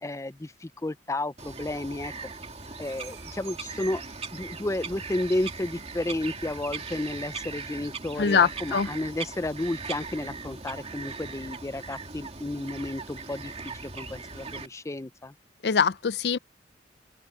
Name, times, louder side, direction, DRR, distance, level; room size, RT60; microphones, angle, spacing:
voice 1, 0.0-2.3 2.8-4.0 4.3-13.5 13.8-15.3, left 1 dB, 15° left, 0.5 m, -32 dB
Bird vocalization bird call bird song, 1.4-14.7, right 4 dB, 35° right, 2.5 m, -39 dB
sound 1, 2.8-13.2, right 5 dB, 75° right, 6.0 m, -60 dB
voice 2, 8.2-8.9 15.6-16.4, left 6 dB, 65° left, 0.5 m, -23 dB
open air
head